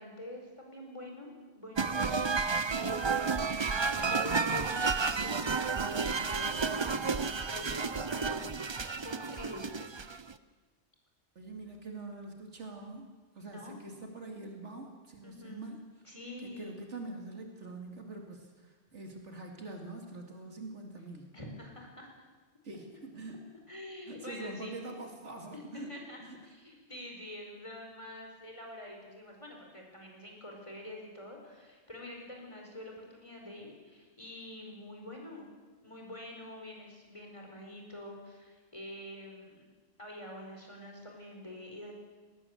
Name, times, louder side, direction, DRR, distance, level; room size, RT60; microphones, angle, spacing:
voice 1, 0.0-9.6 13.5-13.7 15.2-15.6 16.0-16.7 21.3-22.1 23.7-24.7 25.5-35.5 35.8-39.6 40.0-41.9, left 1 dB, 25° left, 0 dB, 4.8 m, -46 dB
sound 1, 1.8-10.3, right 4 dB, 30° right, 0.6 m, -31 dB
voice 2, 2.5-3.1 11.3-13.1 13.3-15.8 16.4-21.3 22.6-23.4 24.1-25.9 26.2-26.4, right 2 dB, 80° right, 2 dB, 2.7 m, -44 dB
19.0 x 19.0 x 8.1 m, 1.4 s
omnidirectional pair, 1.2 m